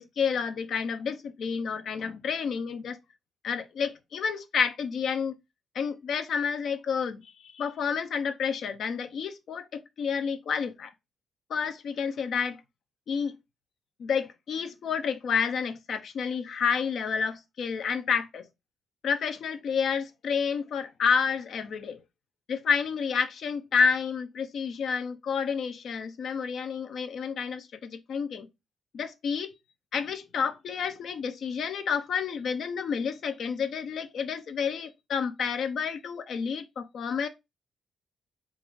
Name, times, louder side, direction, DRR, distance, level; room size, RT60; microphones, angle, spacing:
voice 1, 0.0-3.0 3.4-5.3 5.7-10.9 11.5-12.6 13.1-13.3 14.0-18.5 19.0-22.0 22.5-28.5 28.9-29.5 29.9-37.3, left 6 dB, 70° left, 0.7 m, -30 dB
3.7 x 2.6 x 4.7 m
cardioid pair, 90°, 0 cm